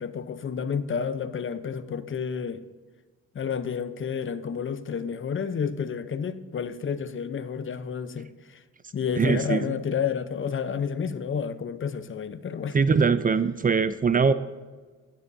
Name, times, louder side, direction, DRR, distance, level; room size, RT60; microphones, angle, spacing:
voice 1, 0.0-2.6 3.3-8.6 8.9-12.8, left 6 dB, 40° left, 0.8 m, -30 dB
voice 2, 9.2-9.8 12.7-14.3, right 5 dB, 30° right, 0.5 m, -22 dB
16.5 x 12.0 x 2.7 m
cardioid pair, 90°, 30 cm